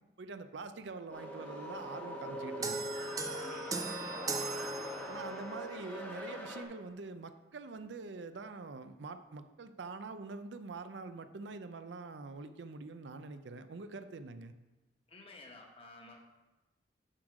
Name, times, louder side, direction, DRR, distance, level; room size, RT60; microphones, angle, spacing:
voice 1, 0.2-2.9 5.1-14.5, right 3 dB, 75° right, 10 dB, 0.5 m, -45 dB
sound 1, 1.1-6.6, equal, 10° left, 1.1 m, -43 dB
sound 2, 2.6-5.5, right 3 dB, 20° right, 0.5 m, -38 dB
voice 2, 3.3-4.0 15.1-16.2, left 2 dB, 30° left, 1 dB, 1.2 m, -52 dB
7.6 x 6.3 x 4.9 m, 1.1 s
head